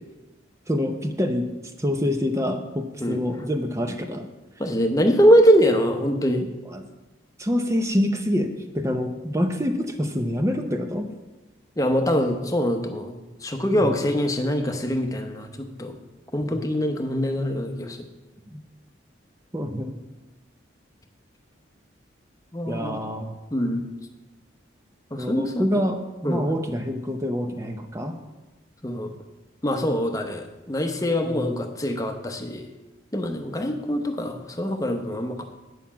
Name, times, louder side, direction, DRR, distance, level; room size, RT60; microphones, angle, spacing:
voice 1, 0.7-1.5 1.8-4.3 6.7-6.8 7.4-11.1 13.7-14.0 16.4-16.6 18.5-18.6 19.5-20.0 22.6-23.3 25.2-28.2 31.2-31.6, equal, 15° right, 6 dB, 0.6 m, -26 dB
voice 2, 3.0-3.3 4.6-6.5 11.8-16.0 16.3-18.0 22.5-23.1 23.5-23.8 25.1-25.8 26.2-26.4 28.8-29.1 29.6-32.7 33.1-35.4, equal, 15° left, 5 dB, 0.8 m, -23 dB
9.6 x 5.7 x 7.2 m, 1.1 s
head